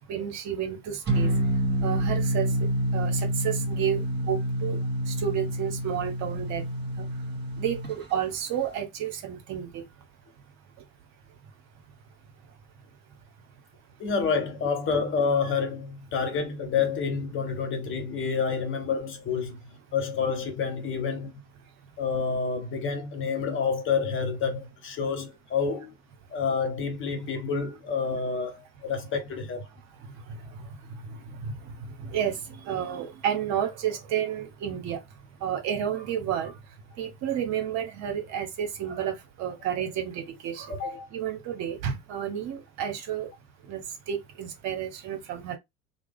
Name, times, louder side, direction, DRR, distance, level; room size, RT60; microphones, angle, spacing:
voice 1, 0.1-1.3 1.8-2.5 2.9-4.0 4.3-4.8 5.1-6.6 7.0-7.1 7.6-9.8 31.1-31.2 31.4-31.5 32.1-32.4 32.7-35.0 35.4-36.5 37.0-40.7 41.1-43.3 43.7-45.6, right 9 dB, 45° right, 0.8 m, -31 dB
sound 1, 1.1-7.9, right 1 dB, 25° right, 1.5 m, -28 dB
voice 2, 14.0-19.6 19.9-21.4 22.0-25.9 26.3-29.6 40.8-41.1, left 5 dB, 30° left, 0.9 m, -28 dB
3.2 x 2.0 x 3.5 m
figure-of-eight pair, 75°, 40 cm